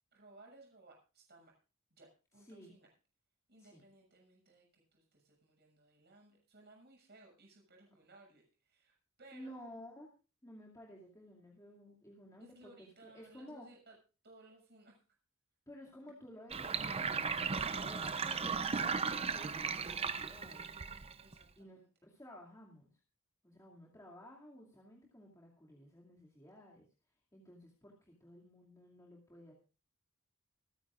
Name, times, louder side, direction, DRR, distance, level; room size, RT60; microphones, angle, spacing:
voice 1, 0.1-1.5 1.9-2.9 3.5-4.6 4.9-9.5 12.4-13.9 14.2-15.0 21.2-21.9, right 2 dB, 50° right, 0 dB, 6.9 m, -61 dB
voice 2, 2.3-2.7 3.6-3.8 9.3-10.1 10.4-13.7 15.7-17.3 17.7-18.7 19.3-20.7 21.6-22.9 23.4-26.9 27.3-29.5, equal, 15° left, -3 dB, 2.4 m, -54 dB
Sink (filling or washing), 16.5-21.4, right 5 dB, 30° right, 0.6 m, -36 dB
26.0 x 10.0 x 2.5 m, 0.34 s
head